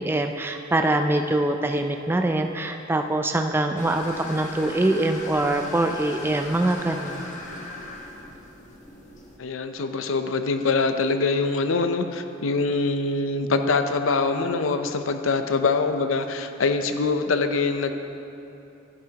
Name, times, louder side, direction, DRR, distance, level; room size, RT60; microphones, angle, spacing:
voice 1, 0.0-7.3, right 1 dB, 10° right, 5 dB, 0.3 m, -24 dB
sound 1, 3.8-9.4, left 2 dB, 40° left, 1.1 m, -38 dB
voice 2, 9.4-17.9, left 3 dB, 90° left, 8 dB, 0.6 m, -24 dB
11.5 x 11.0 x 2.9 m, 2.8 s
head